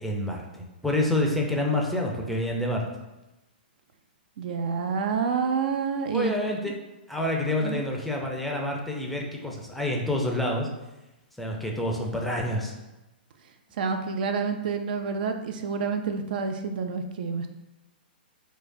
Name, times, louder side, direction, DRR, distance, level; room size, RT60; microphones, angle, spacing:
voice 1, 0.0-2.9 6.1-6.7 7.1-10.7 11.4-12.7, left 1 dB, ahead, 0 dB, 0.4 m, -28 dB
voice 2, 4.4-6.3 7.6-7.8 13.8-17.5, right 5 dB, 60° right, 6 dB, 0.4 m, -28 dB
4.5 x 2.2 x 2.6 m, 1.0 s
hypercardioid pair, 140°, 5 cm